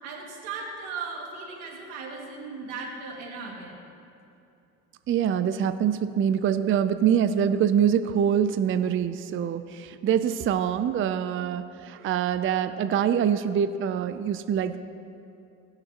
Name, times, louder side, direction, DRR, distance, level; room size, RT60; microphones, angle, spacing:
voice 1, 0.0-3.8, right 4 dB, 85° right, -1 dB, 2.1 m, -37 dB
voice 2, 5.1-14.8, right 8 dB, 30° right, 11 dB, 0.5 m, -24 dB
20.5 x 6.8 x 2.9 m, 2.8 s
supercardioid pair, 80°, 40 cm